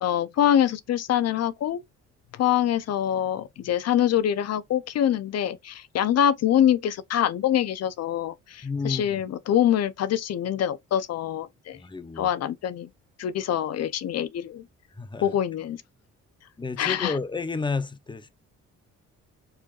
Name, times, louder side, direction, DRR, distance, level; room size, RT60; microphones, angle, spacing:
voice 1, 0.0-1.8 2.4-11.8 12.2-12.9 13.2-14.7 15.2-15.8 16.8-17.1, left 10 dB, 60° left, 0.6 m, -24 dB
voice 2, 8.6-9.2 11.7-12.3 14.9-15.4 16.6-18.3, left 4 dB, 15° left, 0.7 m, -31 dB
4.6 x 4.4 x 2.4 m
cardioid pair, 90°, 30 cm